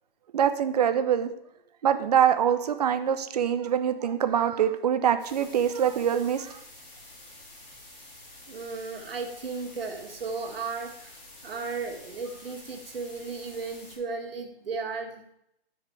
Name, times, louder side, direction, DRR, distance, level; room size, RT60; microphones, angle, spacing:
voice 1, 0.3-1.3 1.8-6.6, right 9 dB, 40° right, 10 dB, 0.7 m, -24 dB
sound 1, 5.2-14.0, left 1 dB, 20° left, 2.0 m, -49 dB
voice 2, 8.5-15.3, right 4 dB, 70° right, 2 dB, 1.9 m, -35 dB
13.5 x 4.8 x 3.3 m, 0.78 s
hypercardioid pair, 150°, 30 cm